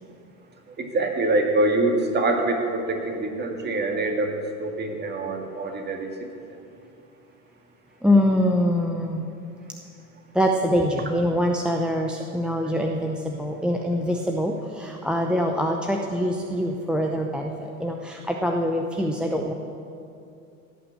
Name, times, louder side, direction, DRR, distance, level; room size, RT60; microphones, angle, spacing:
voice 1, 0.8-6.1, right 2 dB, 25° right, 3 dB, 2.0 m, -25 dB
voice 2, 8.0-9.2 10.4-14.5 14.8-17.5 17.8-19.5, equal, ahead, 2 dB, 0.6 m, -24 dB
16.5 x 5.9 x 8.2 m, 2.6 s
hypercardioid pair, 100°, 43 cm